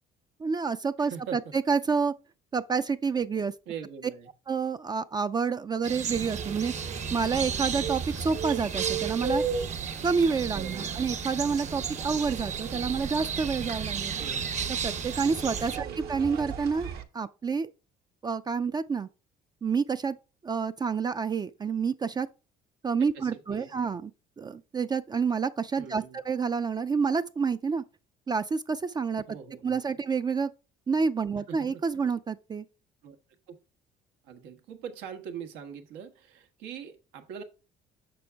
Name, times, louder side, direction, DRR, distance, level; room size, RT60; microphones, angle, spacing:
voice 1, 0.4-1.4 1.7-2.1 2.5-3.5 4.5-6.7 7.1-9.4 10.0-14.2 14.8-16.9 17.1-17.7 18.2-19.1 19.6-20.2 20.4-22.3 22.8-24.1 24.4-27.8 28.3-29.2 29.6-30.5 30.9-32.6, right 5 dB, 25° right, 0.3 m, -28 dB
voice 2, 1.0-1.5 3.7-4.3 10.5-11.0 14.2-14.5 15.7-16.2 23.1-23.7 25.8-26.2 29.3-29.8 31.5-31.8 33.0-33.2 33.5-33.6 34.2-37.4, right 7 dB, 90° right, 1.2 m, -42 dB
sound 1, 5.8-15.8, right 7 dB, 45° right, 0.9 m, -35 dB
sound 2, 6.1-17.0, right 6 dB, 65° right, 1.2 m, -36 dB
6.9 x 6.1 x 3.4 m
cardioid pair, 100°, 17 cm